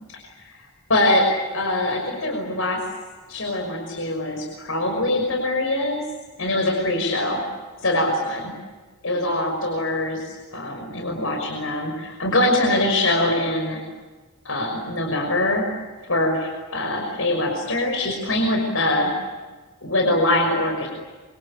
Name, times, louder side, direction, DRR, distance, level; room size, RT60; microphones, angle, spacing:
voice 1, 0.2-0.6 0.9-1.3 1.5-2.8 3.3-6.0 6.4-7.4 7.8-8.5 9.0-13.8 14.4-15.6 16.1-19.1 19.8-20.9, left 1 dB, 65° left, 1 dB, 5.9 m, -23 dB
26.5 x 25.5 x 8.6 m, 1.3 s
head